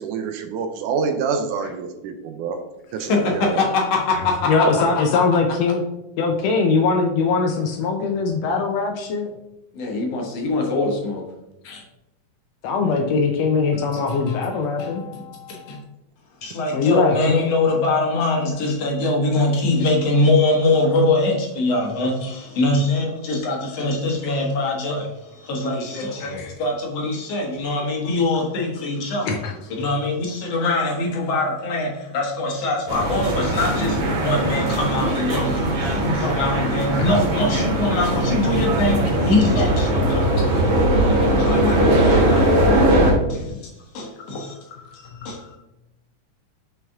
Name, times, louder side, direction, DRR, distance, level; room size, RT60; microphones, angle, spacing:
voice 1, 0.0-2.6 2.9-3.6 4.7-4.8, right 5 dB, 80° right, 6 dB, 2.0 m, -26 dB
voice 2, 3.0-5.2 9.7-11.3 11.6-11.8 13.7-14.4 14.8-15.8 16.4-29.4 29.8-43.7 43.9-45.6, left 2 dB, 55° left, 0 dB, 2.0 m, -23 dB
voice 3, 4.1-5.8 6.2-9.3 12.6-15.0 16.7-17.5 26.2-26.5 29.2-29.5, left 4 dB, 90° left, 2 dB, 1.4 m, -21 dB
sound 1, 32.9-43.1, right 1 dB, 60° right, 2.7 m, -20 dB
7.2 x 5.7 x 3.6 m, 0.92 s
omnidirectional pair, 3.9 m